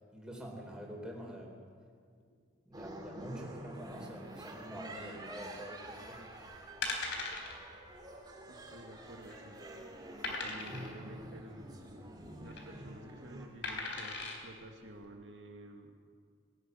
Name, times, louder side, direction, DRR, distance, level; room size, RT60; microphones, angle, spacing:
voice 1, 0.1-1.5 2.6-6.7, equal, 5° right, -1 dB, 4.2 m, -46 dB
sound 1, 2.7-13.5, right 1 dB, 20° right, 2.6 m, -48 dB
sound 2, 6.3-6.4 6.8-7.5 7.9-8.1 8.3-8.4 9.0-9.5 10.2-10.9 12.2-12.6 13.6-14.4 15.0-15.1, left 3 dB, 60° left, 3.9 m, -38 dB
voice 2, 8.5-9.6 10.2-11.8 12.4-15.9, right 1 dB, 75° right, 2 dB, 2.3 m, -51 dB
19.5 x 17.5 x 9.5 m, 2.1 s
head